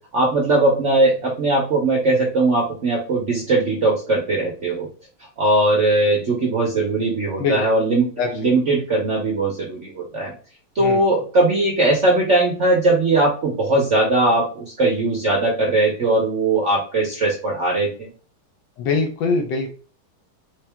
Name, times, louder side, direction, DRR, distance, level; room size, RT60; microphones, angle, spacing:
voice 1, 0.1-4.9 5.4-10.3 10.7-18.1, right 2 dB, 55° right, -2 dB, 0.8 m, -19 dB
voice 2, 8.2-8.6 10.8-11.0 18.8-19.7, left 4 dB, 70° left, 3 dB, 1.2 m, -23 dB
3.6 x 2.7 x 3.4 m, 0.39 s
omnidirectional pair, 2.3 m